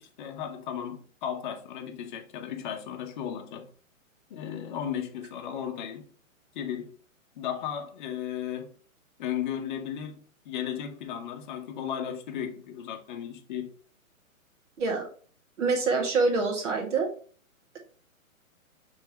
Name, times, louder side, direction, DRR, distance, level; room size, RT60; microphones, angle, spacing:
voice 1, 0.2-3.7 4.3-6.1 6.5-6.9 7.4-8.7 9.2-13.7, left 9 dB, 35° left, 0.8 m, -35 dB
voice 2, 14.8-15.1 15.6-17.1, right 4 dB, 60° right, 1.7 m, -25 dB
5.3 x 3.5 x 2.8 m
hypercardioid pair, 135°, 42 cm